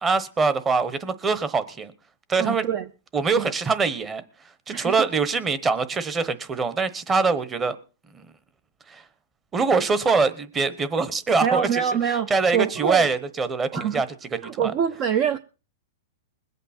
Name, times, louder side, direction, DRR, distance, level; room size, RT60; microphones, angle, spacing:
voice 1, 0.0-1.9 2.3-2.7 3.1-4.2 4.7-7.8 8.1-8.2 8.9-9.0 9.5-11.8 12.3-14.1 14.4-14.7, right 4 dB, 15° right, 1.1 m, -23 dB
voice 2, 2.4-2.9 3.4-3.5 4.7-5.1 11.4-13.1 13.7-14.0 14.4-15.4, right 8 dB, 40° right, 0.6 m, -25 dB
21.0 x 8.2 x 4.4 m
hypercardioid pair, 145°, 0 cm